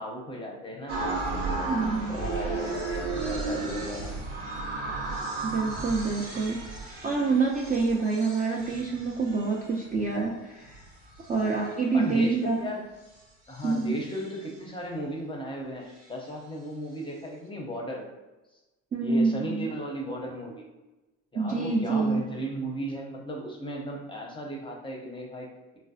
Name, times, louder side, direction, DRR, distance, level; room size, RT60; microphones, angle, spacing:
voice 1, 0.0-1.7 2.1-4.2 11.3-11.6 11.9-12.9 13.5-18.1 19.0-20.7 21.3-25.8, equal, 15° left, 0 dB, 0.6 m, -36 dB
sound 1, 0.9-10.1 10.6-11.9 13.2-13.3 13.5-14.5, right 3 dB, 90° right, 0.9 m, -34 dB
voice 2, 1.6-2.2 5.4-6.6 7.0-10.8 11.3-12.7 13.6-14.0 18.9-19.7 21.3-22.3, right 4 dB, 25° right, -2 dB, 0.4 m, -27 dB
3.8 x 2.0 x 2.6 m, 1.1 s
hypercardioid pair, 75°, 37 cm